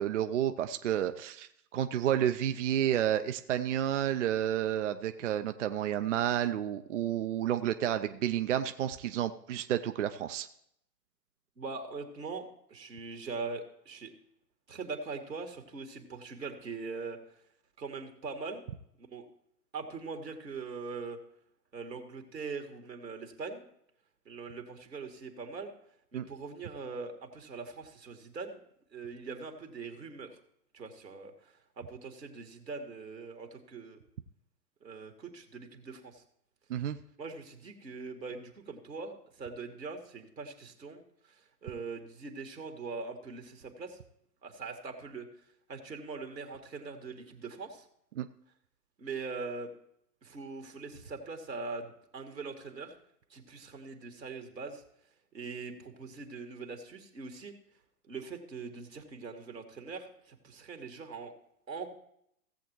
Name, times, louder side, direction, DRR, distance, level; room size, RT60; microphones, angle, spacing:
voice 1, 0.0-10.5 26.1-26.3 36.7-37.0 48.2-48.3, right 11 dB, 50° right, 8 dB, 0.6 m, -30 dB
voice 2, 11.6-14.1 14.7-17.2 17.8-18.6 19.0-19.3 19.7-21.2 21.7-23.7 24.3-25.7 26.1-28.6 28.9-30.3 30.7-34.0 34.8-36.2 37.2-44.0 44.4-45.3 45.7-47.9 49.0-49.7 50.2-52.9 53.3-54.8 55.3-57.5 58.0-61.3 61.7-61.9, right 4 dB, 85° right, 3 dB, 2.2 m, -42 dB
17.0 x 7.9 x 3.0 m, 0.74 s
figure-of-eight pair, 120°, 49 cm